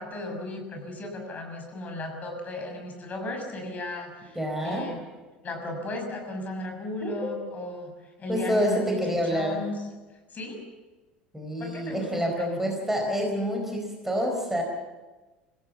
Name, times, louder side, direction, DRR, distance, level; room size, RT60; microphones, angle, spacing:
voice 1, 0.0-4.4 4.6-5.1 5.4-7.9 8.2-9.7 10.3-10.6 11.6-12.6, left 2 dB, 30° left, 3 dB, 6.5 m, -35 dB
voice 2, 4.3-4.9 7.0-7.4 8.3-9.6 11.3-14.6, equal, 5° right, 1 dB, 4.4 m, -28 dB
26.0 x 16.5 x 7.2 m, 1.2 s
figure-of-eight pair, 70°, 5 cm